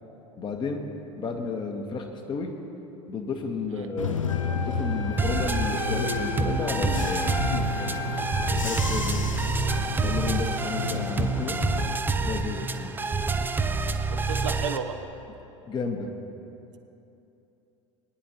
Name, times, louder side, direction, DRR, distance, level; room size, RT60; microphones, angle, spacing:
voice 1, 0.4-0.8 1.2-2.5 3.1-4.2 4.5-7.9 8.5-9.3 10.0-11.6 12.2-12.9 15.7-16.1, left 4 dB, 30° left, 3 dB, 1.3 m, -32 dB
Bus / Engine, 4.0-12.0, left 6 dB, 75° left, 0.6 m, -31 dB
Wind instrument woodwind instrument, 4.3-8.7, equal, 60° left, 1.8 m, -35 dB
sound 1, 5.2-14.8, right 4 dB, 10° right, 0.5 m, -27 dB
voice 2, 14.1-15.0, right 7 dB, 70° right, 5 dB, 0.8 m, -33 dB
21.5 x 9.9 x 3.0 m, 2.9 s
figure-of-eight pair, 75°, 17 cm